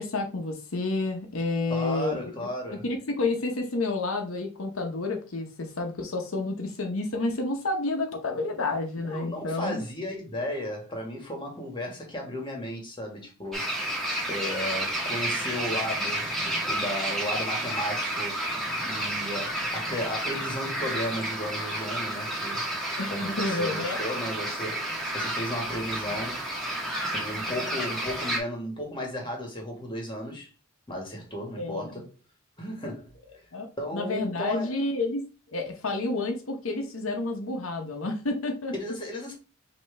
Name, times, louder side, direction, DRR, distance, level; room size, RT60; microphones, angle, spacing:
voice 1, 0.0-2.2 2.7-9.8 23.0-23.1 23.4-24.0 31.6-31.9 33.5-33.7 33.9-35.2 35.5-38.7, left 2 dB, 80° left, 0.9 m, -30 dB
voice 2, 1.7-2.9 9.0-18.5 18.8-22.7 23.1-26.4 27.1-30.5 30.9-32.1 32.6-33.4 33.8-34.7 38.7-39.3, left 1 dB, 25° left, 1.6 m, -35 dB
sound 1, 13.5-28.4, right 1 dB, ahead, 1.3 m, -31 dB
5.4 x 3.0 x 3.3 m
head